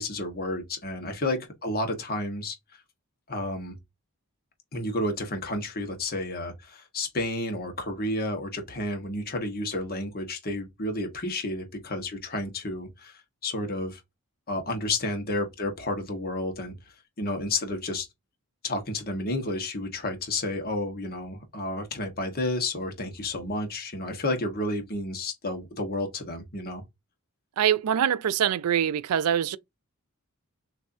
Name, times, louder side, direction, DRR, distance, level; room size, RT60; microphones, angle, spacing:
voice 1, 0.0-2.6 3.3-3.8 4.7-14.0 14.5-16.7 17.2-18.1 18.6-26.8, left 1 dB, 45° left, 1.3 m, -31 dB
voice 2, 27.6-29.6, right 9 dB, 85° right, 0.4 m, -24 dB
6.4 x 2.7 x 2.6 m
head